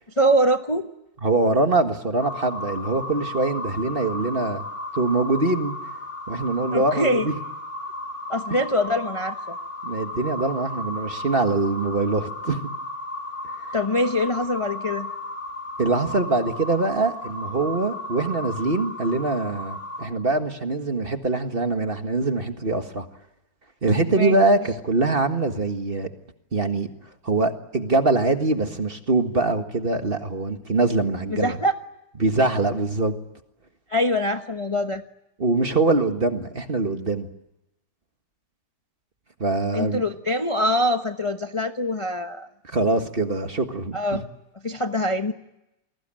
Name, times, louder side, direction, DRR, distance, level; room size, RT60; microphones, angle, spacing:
voice 1, 0.2-0.9 6.7-7.3 8.3-9.6 13.7-15.1 24.1-24.4 31.3-31.7 33.9-35.0 39.7-42.5 43.9-44.2 44.6-45.3, equal, 20° left, 6 dB, 0.9 m, -23 dB
voice 2, 1.2-4.6 5.0-5.7 6.3-7.3 9.8-12.7 15.8-23.1 23.8-26.1 26.5-26.9 27.2-31.6 32.2-33.1 35.4-37.3 39.4-40.0 42.6-44.2, right 2 dB, 30° right, 6 dB, 1.8 m, -23 dB
sound 1, 2.2-20.1, left 1 dB, 40° left, 2.7 m, -34 dB
29.5 x 22.0 x 9.0 m, 0.90 s
omnidirectional pair, 2.0 m